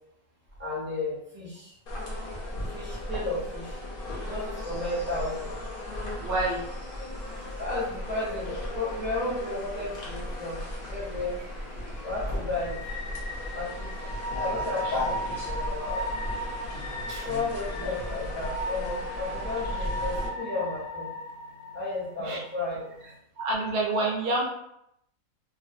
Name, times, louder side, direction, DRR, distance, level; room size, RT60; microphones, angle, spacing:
voice 1, 0.6-1.8 2.7-3.8 4.2-5.5 7.6-10.6 10.9-11.4 12.0-12.8 13.5-14.1 14.4-16.0 17.2-21.1 21.7-22.9, left 2 dB, 15° right, -8 dB, 0.4 m, -33 dB
sound 1, 1.9-20.3, left 1 dB, 55° left, 0.6 m, -36 dB
voice 2, 6.2-6.6 14.8-15.0 17.1-17.3 17.7-17.9 22.2-22.4 23.4-24.5, right 2 dB, 60° right, -1 dB, 0.6 m, -28 dB
sound 2, 7.2-23.2, equal, 85° left, 1.1 m, -38 dB
2.6 x 2.0 x 2.6 m, 0.79 s
omnidirectional pair, 1.6 m